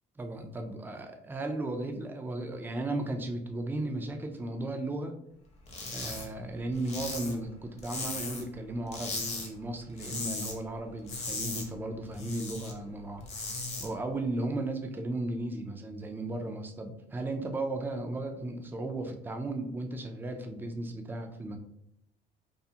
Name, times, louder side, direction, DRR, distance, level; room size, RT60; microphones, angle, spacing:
voice 1, 0.2-5.2 5.9-21.6, right 2 dB, 10° right, 4 dB, 0.3 m, -35 dB
sound 1, 5.7-6.3 6.5-8.5 8.9-9.5 9.8-10.6 10.9-12.7 13.1-13.9, left 3 dB, 40° left, 0.7 m, -37 dB
2.4 x 2.4 x 2.7 m, 0.76 s
cardioid pair, 110°, 17 cm